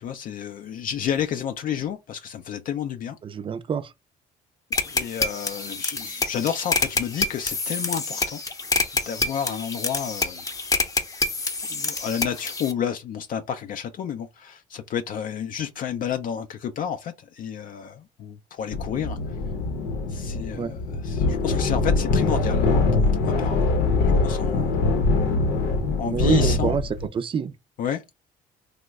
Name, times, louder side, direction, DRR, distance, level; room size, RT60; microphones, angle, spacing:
voice 1, 0.0-3.2 4.8-8.4 9.1-10.4 11.7-19.4 20.1-23.7 24.0-24.8 26.0-26.8 27.8-28.0, left 8 dB, 55° left, 0.4 m, -31 dB
voice 2, 3.2-3.9 20.5-20.7 26.1-26.8 27.1-27.5, right 6 dB, 30° right, 0.4 m, -26 dB
sound 1, 4.7-12.7, left 3 dB, 20° left, 0.7 m, -27 dB
sound 2, 18.7-27.1, left 3 dB, 85° left, 0.8 m, -23 dB
3.0 x 2.1 x 3.4 m
cardioid pair, 110°, 17 cm